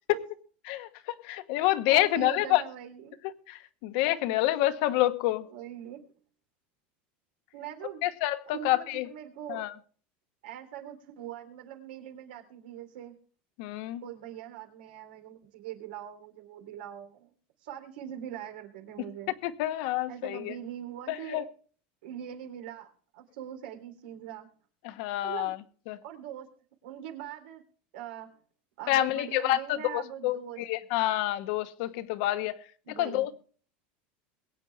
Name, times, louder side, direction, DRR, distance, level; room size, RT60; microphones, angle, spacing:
voice 1, 0.7-2.6 3.5-5.5 8.0-9.1 9.5-9.7 13.6-14.0 19.4-20.5 21.1-21.4 24.8-25.6 25.9-26.0 28.9-32.6 33.0-33.3, left 15 dB, 60° left, 1.2 m, -28 dB
voice 2, 1.9-3.2 5.5-6.0 7.5-8.1 8.5-9.7 10.4-13.1 14.0-17.3 17.6-19.3 20.1-21.4 22.0-24.5 25.2-25.5 26.0-26.5 26.8-27.6 27.9-28.3 28.8-30.6 32.9-33.3, right 11 dB, 80° right, 3.4 m, -42 dB
22.5 x 9.1 x 3.5 m
supercardioid pair, 165°, 5 cm